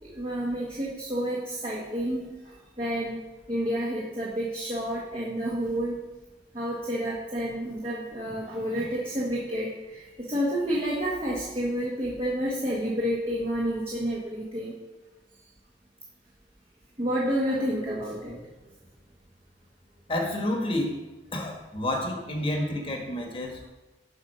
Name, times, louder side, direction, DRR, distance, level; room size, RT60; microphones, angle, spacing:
voice 1, 0.0-3.2 3.5-6.0 6.5-14.8 17.0-18.4 22.5-22.7, equal, 30° right, -5 dB, 1.4 m, -30 dB
voice 2, 20.1-21.0 21.3-23.7, left 1 dB, 30° left, 1 dB, 1.4 m, -29 dB
7.9 x 5.3 x 5.6 m, 1.1 s
head